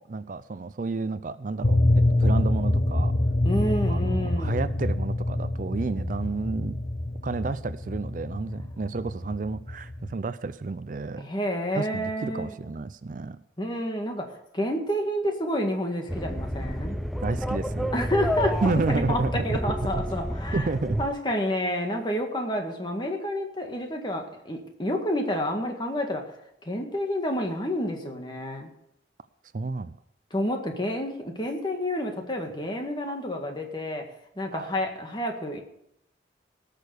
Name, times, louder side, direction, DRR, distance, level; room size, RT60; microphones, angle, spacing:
voice 1, 0.0-3.1 3.9-6.8 7.2-11.3 11.7-13.4 17.2-17.9 18.6-19.6 19.9-20.0 20.5-21.0 29.5-30.0 33.1-33.2 34.5-34.7, right 3 dB, 45° right, 13 dB, 0.4 m, -30 dB
sound 1, 1.6-10.1, left 1 dB, 45° left, 1.1 m, -26 dB
voice 2, 3.4-4.7 11.2-12.5 13.6-17.0 17.9-20.7 21.0-26.3 26.6-28.7 30.3-34.1 34.4-35.6, equal, 25° left, 3 dB, 1.9 m, -29 dB
sound 2, 16.1-21.1, equal, ahead, 0.6 m, -30 dB
18.0 x 6.7 x 6.6 m, 0.79 s
head